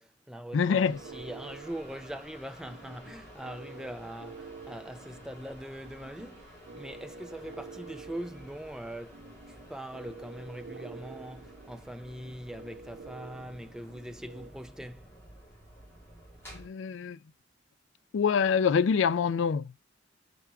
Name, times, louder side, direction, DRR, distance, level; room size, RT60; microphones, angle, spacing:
voice 1, 0.0-15.1, equal, 5° right, 0.5 m, -42 dB
voice 2, 0.5-1.0 16.5-17.2 18.1-19.8, left 6 dB, 75° left, 0.4 m, -26 dB
sound 1, 0.7-16.7, right 1 dB, 15° left, 2.0 m, -52 dB
sound 2, 0.9-14.5, right 4 dB, 85° right, 0.8 m, -49 dB
Wind instrument woodwind instrument, 1.6-8.1, left 2 dB, 35° left, 2.2 m, -63 dB
6.1 x 3.4 x 5.7 m
head